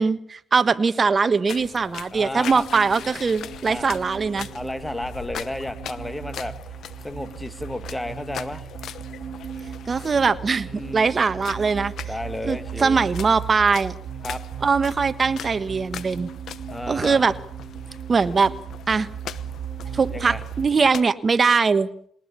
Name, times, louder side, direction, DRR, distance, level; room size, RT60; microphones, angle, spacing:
voice 1, 0.0-4.5 9.9-11.9 12.4-13.9 14.6-16.3 16.9-17.3 18.1-18.5 18.9-19.1 19.9-21.9, right 5 dB, 35° right, 12 dB, 1.3 m, -21 dB
sound 1, 1.5-21.0, left 10 dB, 70° left, 1.0 m, -41 dB
voice 2, 2.1-2.6 3.7-3.9 4.5-6.6 7.0-8.7 10.7-11.1 12.0-13.0 14.2-14.4 16.7-17.2 20.1-20.4, left 1 dB, 10° left, 11 dB, 1.9 m, -32 dB
sound 2, 2.6-20.7, right 9 dB, 55° right, 3.2 m, -37 dB
21.5 x 19.0 x 7.0 m, 0.64 s
cardioid pair, 90°, 0 cm